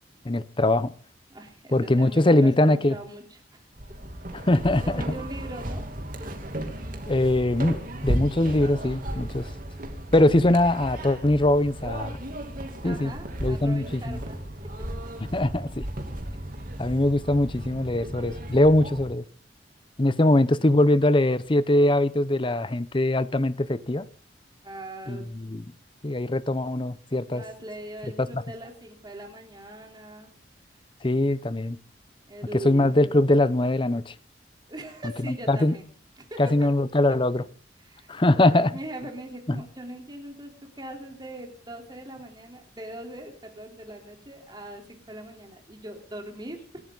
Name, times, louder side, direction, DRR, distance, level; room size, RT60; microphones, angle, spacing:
voice 1, 0.2-0.9 1.7-3.0 4.3-5.0 7.1-9.4 10.1-12.2 12.8-13.1 13.4-14.2 15.3-15.9 16.8-19.2 20.0-24.1 25.1-25.6 26.0-27.4 28.3-28.4 31.0-31.8 32.6-34.1 35.2-35.7 36.4-37.4 38.1-38.7, left 1 dB, 30° left, 0.8 m, -22 dB
voice 2, 1.3-3.6 4.8-5.8 6.2-6.3 9.1-9.3 12.8-14.4 20.2-20.3 24.6-25.3 27.3-30.3 32.3-32.9 34.7-35.9 36.2-36.7 37.8-46.7, right 1 dB, 25° right, 3.7 m, -41 dB
sound 1, 3.7-19.1, right 1 dB, 50° right, 2.8 m, -35 dB
26.5 x 12.0 x 4.0 m
head